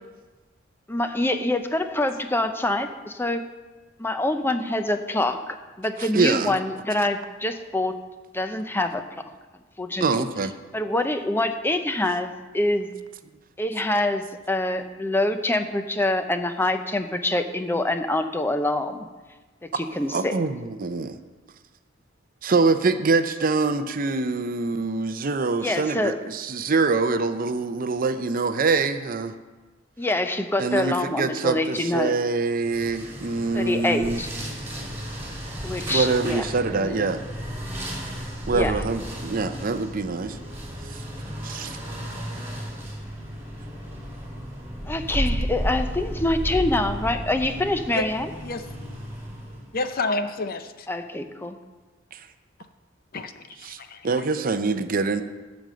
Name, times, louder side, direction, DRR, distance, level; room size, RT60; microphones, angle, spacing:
voice 1, 0.9-3.4 4.0-8.0 8.3-9.0 9.8-10.3 10.7-12.9 13.6-19.1 19.6-20.4 25.6-26.1 30.0-32.2 33.5-34.3 35.6-37.1 38.5-38.8 44.9-48.3 50.9-51.6, left 1 dB, 10° left, 8 dB, 0.6 m, -25 dB
voice 2, 6.1-6.5 10.0-10.5 19.7-19.8 20.1-21.2 22.4-29.4 30.6-34.2 35.9-37.2 38.5-40.4 40.8-41.0 41.4-41.8 52.1-52.3 53.6-53.8 54.0-55.2, right 4 dB, 45° right, 10 dB, 0.6 m, -24 dB
sound 1, 32.6-49.7, equal, 15° right, 3.0 m, -33 dB
voice 3, 49.7-50.9 53.1-53.4 53.8-54.1, left 2 dB, 50° left, 9 dB, 0.7 m, -28 dB
12.5 x 5.3 x 7.7 m, 1.3 s
head